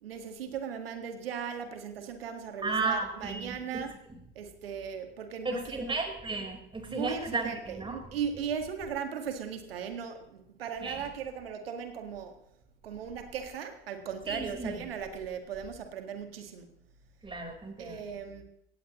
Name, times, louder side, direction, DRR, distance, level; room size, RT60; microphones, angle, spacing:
voice 1, 0.0-3.9 4.4-6.0 6.9-12.4 12.8-16.8 17.8-18.4, right 7 dB, 80° right, 7 dB, 1.9 m, -38 dB
voice 2, 2.6-3.8 5.4-8.0 10.8-11.0 14.3-14.8 17.2-18.0, right 3 dB, 15° right, 2 dB, 4.4 m, -34 dB
17.5 x 16.0 x 3.1 m, 0.78 s
hypercardioid pair, 75°, 29 cm